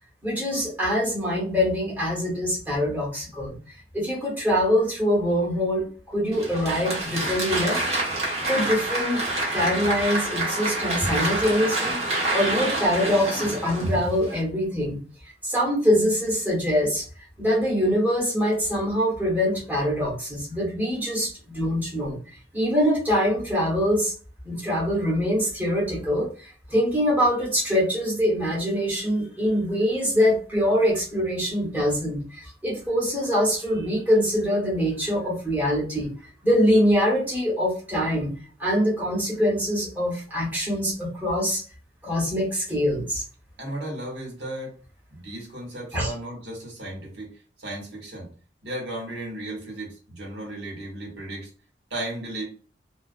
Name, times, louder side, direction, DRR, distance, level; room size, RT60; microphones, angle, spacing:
voice 1, 0.2-3.6 3.9-7.8 8.4-9.2 9.5-12.0 12.3-15.0 15.4-17.1 17.4-22.2 22.5-24.1 24.4-36.1 36.4-38.3 38.6-41.6 42.0-43.2 45.9-46.1, equal, 10° right, -6 dB, 1.0 m, -24 dB
Applause, 6.3-14.4, right 2 dB, 40° right, 0.8 m, -27 dB
voice 2, 43.6-44.8 45.1-47.3 47.6-48.3 48.6-51.5 51.9-52.5, right 1 dB, 75° right, -2 dB, 1.1 m, -35 dB
2.3 x 2.2 x 2.4 m, 0.39 s
head